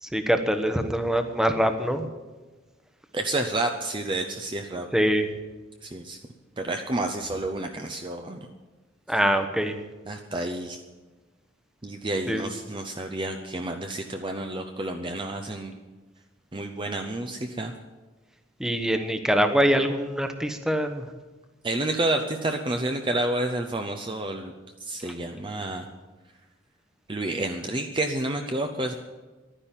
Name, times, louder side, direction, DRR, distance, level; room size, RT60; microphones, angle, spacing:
voice 1, 0.0-2.1 4.9-5.3 9.1-9.8 12.3-12.4 18.6-21.0 25.1-25.2, equal, 5° right, 7 dB, 1.0 m, -24 dB
voice 2, 3.1-4.9 5.8-6.2 6.6-8.4 10.1-10.8 11.8-15.7 16.5-17.7 21.6-24.5 24.8-25.9 27.1-28.9, right 2 dB, 25° right, 4 dB, 0.7 m, -29 dB
12.0 x 10.0 x 9.0 m, 1.2 s
head